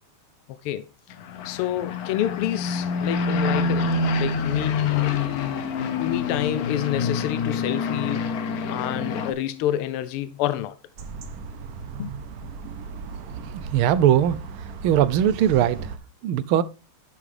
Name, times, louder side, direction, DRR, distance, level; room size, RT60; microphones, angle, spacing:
sound 1, 1.1-9.3, left 4 dB, 60° left, 1.0 m, -26 dB
voice 1, 1.4-5.1 6.0-8.3 8.7-10.7 12.0-12.1, left 12 dB, 85° left, 1.5 m, -28 dB
sound 2, 11.0-16.0, right 5 dB, 60° right, 1.0 m, -37 dB
voice 2, 13.7-14.4 14.8-15.8 16.2-16.6, right 11 dB, 75° right, 1.4 m, -19 dB
11.0 x 5.8 x 3.2 m
omnidirectional pair, 2.4 m